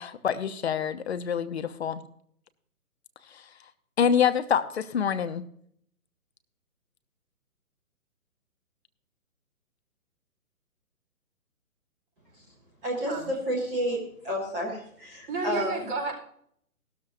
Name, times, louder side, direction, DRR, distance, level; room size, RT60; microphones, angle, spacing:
voice 1, 0.0-2.0 3.3-3.4 4.0-5.5, left 7 dB, 45° left, 10 dB, 0.9 m, -26 dB
voice 2, 12.8-14.0 14.2-15.8, equal, 5° right, -2 dB, 0.6 m, -30 dB
voice 3, 15.3-16.1, right 3 dB, 35° right, -2 dB, 4.2 m, -32 dB
16.0 x 13.0 x 2.7 m, 0.66 s
figure-of-eight pair, 135°, 44 cm